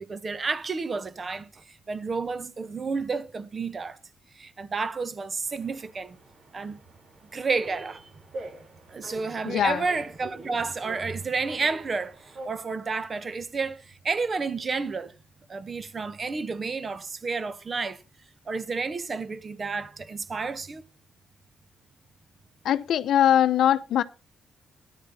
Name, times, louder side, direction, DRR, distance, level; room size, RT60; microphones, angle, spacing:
voice 1, 0.0-4.0 4.3-6.2 6.5-6.8 7.3-8.1 8.9-15.1 15.5-18.0 18.5-20.8, right 4 dB, 35° right, 1.1 m, -31 dB
sound 1, 5.4-12.5, right 1 dB, 50° right, 4.2 m, -45 dB
voice 2, 9.5-9.8 22.6-24.0, left 10 dB, 70° left, 0.7 m, -21 dB
13.5 x 10.0 x 4.1 m
cardioid pair, 90°, 0 cm